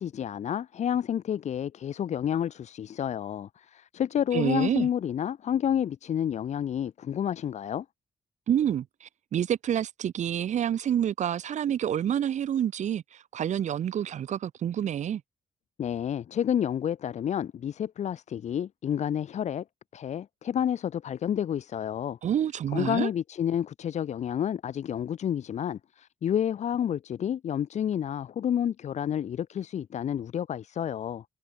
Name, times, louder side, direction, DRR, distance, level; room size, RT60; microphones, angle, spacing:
voice 1, 0.0-7.8 15.8-19.6 19.9-22.2 22.7-31.2, left 9 dB, 65° left, 4.6 m, -30 dB
voice 2, 4.3-4.9 8.5-15.2 22.2-23.1, right 9 dB, 70° right, 5.5 m, -28 dB
wide cardioid pair, 175°, 13 cm